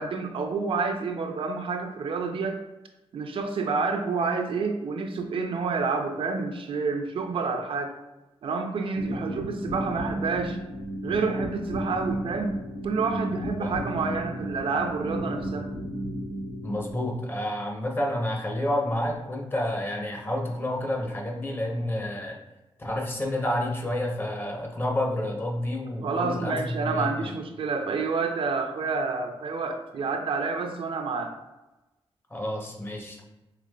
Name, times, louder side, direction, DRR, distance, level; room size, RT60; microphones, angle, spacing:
voice 1, 0.0-2.6 3.1-8.0 8.4-10.6 11.0-12.5 12.8-15.7 26.0-31.3, right 4 dB, 60° right, 5 dB, 0.4 m, -29 dB
sound 1, 8.9-16.9, equal, 85° left, 1.4 m, -34 dB
voice 2, 16.6-22.4 22.8-27.4 32.3-33.2, left 1 dB, 20° left, 0 dB, 0.7 m, -29 dB
4.9 x 3.3 x 2.2 m, 1.0 s
wide cardioid pair, 145°, 10 cm